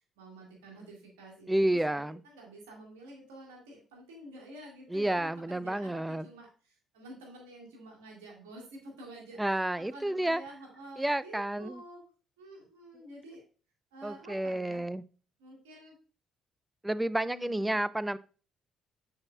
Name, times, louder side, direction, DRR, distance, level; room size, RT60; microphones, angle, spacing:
voice 1, 0.0-12.0 12.4-13.4 13.9-14.9 15.4-16.0 17.2-17.8, right 1 dB, 70° right, -1 dB, 2.0 m, -49 dB
voice 2, 1.5-2.2 4.9-6.3 9.4-10.4 11.0-11.8 14.0-15.0 16.8-18.2, right 1 dB, 10° right, 17 dB, 0.3 m, -30 dB
9.4 x 4.3 x 2.3 m, 0.38 s
figure-of-eight pair, 45°, 0 cm